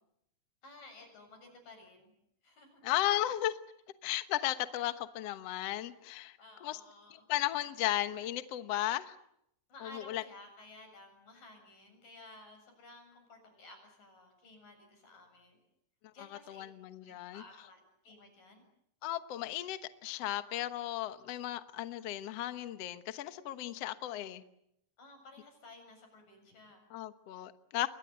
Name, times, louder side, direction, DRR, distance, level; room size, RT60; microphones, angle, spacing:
voice 1, 0.6-2.1 2.4-2.8 6.4-7.3 9.7-15.6 16.1-16.6 17.0-18.6 25.0-26.8, left 2 dB, 55° left, 5 dB, 9.0 m, -55 dB
voice 2, 2.8-3.6 4.0-6.8 7.3-9.2 9.8-10.2 16.2-17.4 19.0-24.4 26.9-27.9, left 14 dB, 80° left, 11 dB, 1.4 m, -35 dB
30.0 x 23.0 x 8.1 m, 0.75 s
omnidirectional pair, 4.7 m